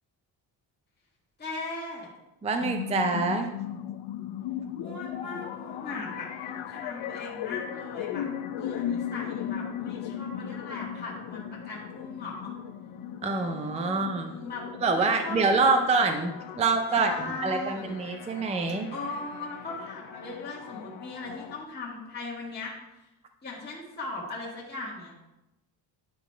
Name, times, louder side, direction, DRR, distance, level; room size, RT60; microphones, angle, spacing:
voice 1, 1.4-2.1 4.8-12.5 13.8-14.6 14.9-15.8 16.9-17.9 18.9-22.7 23.4-25.1, left 3 dB, 20° left, -6 dB, 1.7 m, -38 dB
voice 2, 2.4-3.5 13.2-14.3 14.8-18.9, right 3 dB, 15° right, 5 dB, 0.4 m, -26 dB
sound 1, 2.6-21.6, left 10 dB, 90° left, 0.6 m, -38 dB
11.0 x 4.0 x 4.5 m, 0.97 s
cardioid pair, 155°, 45 cm